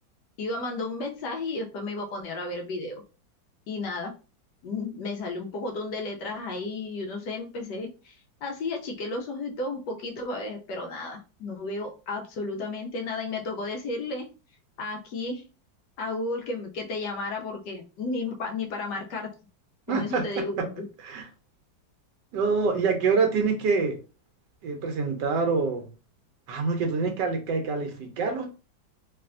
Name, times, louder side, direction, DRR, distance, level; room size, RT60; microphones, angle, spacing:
voice 1, 0.4-3.0 3.7-4.1 4.6-14.3 14.8-15.4 16.0-19.3 19.9-20.9, left 3 dB, 70° left, 2 dB, 1.1 m, -33 dB
voice 2, 19.9-20.2 21.0-21.2 22.3-24.0 24.6-25.9 26.5-28.5, right 4 dB, 75° right, 4 dB, 1.2 m, -26 dB
3.2 x 2.6 x 2.5 m, 0.33 s
omnidirectional pair, 2.1 m